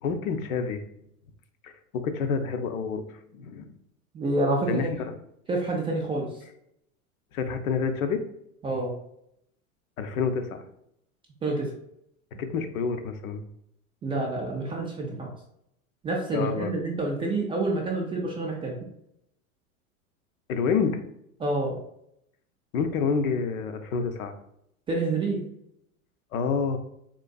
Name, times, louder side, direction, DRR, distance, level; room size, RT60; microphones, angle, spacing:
voice 1, 0.0-0.8 1.6-3.0 3.3-3.7 4.7-4.9 7.3-8.2 10.0-10.6 12.4-13.4 16.3-16.7 20.5-21.0 22.7-24.3 26.3-26.8, left 5 dB, 75° left, 7 dB, 0.6 m, -28 dB
voice 2, 4.1-4.9 5.5-6.3 8.6-8.9 11.4-11.7 14.0-15.3 16.0-18.7 21.4-21.8 24.9-25.4, right 2 dB, 15° right, -2 dB, 0.3 m, -28 dB
3.8 x 2.5 x 2.3 m, 0.76 s
hypercardioid pair, 95°, 43 cm